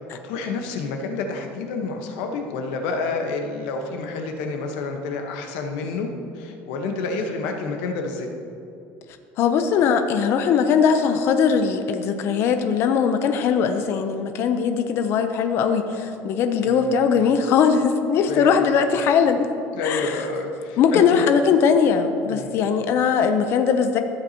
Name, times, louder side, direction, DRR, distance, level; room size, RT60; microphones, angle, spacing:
voice 1, 0.1-6.1 6.3-8.3 16.6-17.0 18.3-19.0 19.7-21.3 22.2-22.6, left 3 dB, 85° left, 4 dB, 1.1 m, -29 dB
voice 2, 9.4-19.5 19.8-20.2 20.8-24.0, left 6 dB, 45° left, 7 dB, 0.6 m, -20 dB
14.0 x 7.9 x 2.9 m, 2.7 s
cardioid pair, 160°, 6 cm